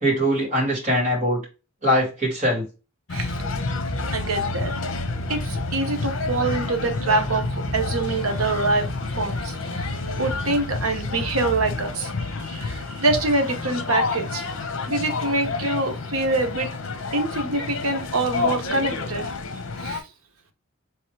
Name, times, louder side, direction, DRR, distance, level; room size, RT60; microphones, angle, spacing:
voice 1, 0.0-1.4 1.8-2.7, equal, 35° right, -3 dB, 2.6 m, -22 dB
sound 1, 3.1-20.0, left 3 dB, 65° left, 0.8 m, -29 dB
voice 2, 3.1-3.4 4.1-4.7 5.3-8.9 9.2-14.4 14.9-16.7 17.1-19.2 19.8-20.0, right 2 dB, 90° right, 7 dB, 0.9 m, -25 dB
3.5 x 3.2 x 4.6 m, 0.30 s
head